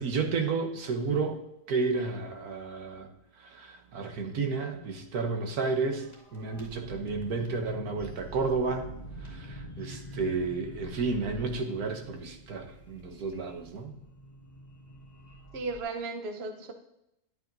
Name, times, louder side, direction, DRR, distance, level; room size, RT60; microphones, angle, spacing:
voice 1, 0.0-1.4 1.7-3.1 3.4-6.1 6.3-8.8 9.2-13.9, right 4 dB, 70° right, 5 dB, 1.5 m, -31 dB
sound 1, 5.9-15.8, right 1 dB, 25° left, 2.1 m, -46 dB
voice 2, 15.5-16.7, right 3 dB, 45° right, 6 dB, 1.0 m, -35 dB
10.5 x 8.3 x 2.6 m, 0.82 s
omnidirectional pair, 1.7 m